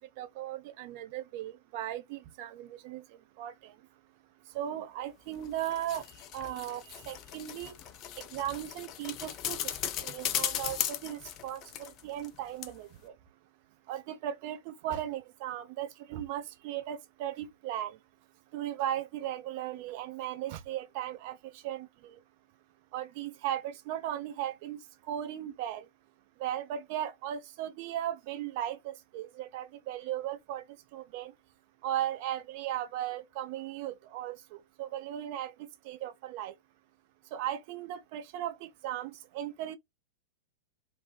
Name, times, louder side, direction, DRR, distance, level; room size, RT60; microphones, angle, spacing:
voice 1, 0.0-3.7 4.5-7.7 8.3-9.6 10.0-13.1 13.9-18.0 18.5-22.2 22.9-24.8 25.1-25.9 26.4-30.6 30.9-31.3 31.8-35.5 35.8-36.5 37.3-39.8, right 11 dB, 45° right, 0.4 m, -37 dB
sound 1, 5.4-12.4 12.6-12.7, left 11 dB, 35° left, 0.4 m, -37 dB
2.6 x 2.1 x 3.1 m
figure-of-eight pair, 95°, 0 cm